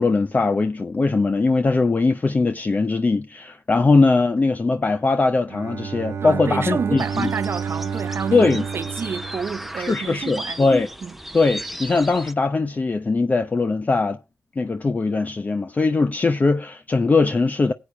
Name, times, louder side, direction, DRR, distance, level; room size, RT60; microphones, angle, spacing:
voice 1, 0.0-7.3 8.3-8.6 9.8-10.9 11.3-14.2 14.6-17.7, left 3 dB, 35° left, 0.6 m, -20 dB
Bowed string instrument, 5.5-10.3, right 6 dB, 70° right, 1.1 m, -31 dB
voice 2, 6.2-10.6 11.0-11.1, right 6 dB, 50° right, 0.6 m, -29 dB
sound 1, 7.0-12.3, right 1 dB, 5° right, 0.7 m, -36 dB
19.5 x 8.3 x 2.2 m
cardioid pair, 70°, 5 cm